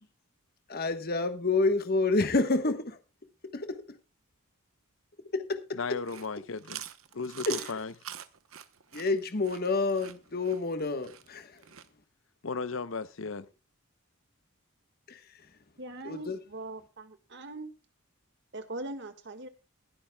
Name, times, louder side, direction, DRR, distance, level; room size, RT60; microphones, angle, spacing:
voice 1, 0.7-3.0 3.5-3.8 5.3-6.0 7.5-7.7 8.9-11.6 15.1-15.2 16.0-16.4, left 3 dB, 45° left, 1.2 m, -29 dB
voice 2, 5.8-6.8 7.1-7.9 12.4-13.5, left 4 dB, 65° left, 0.8 m, -35 dB
Chewing mastication, 5.9-11.9, right 11 dB, 75° right, 0.9 m, -43 dB
voice 3, 15.8-17.7 18.5-19.5, right 2 dB, 55° right, 1.7 m, -41 dB
22.0 x 11.5 x 2.3 m
head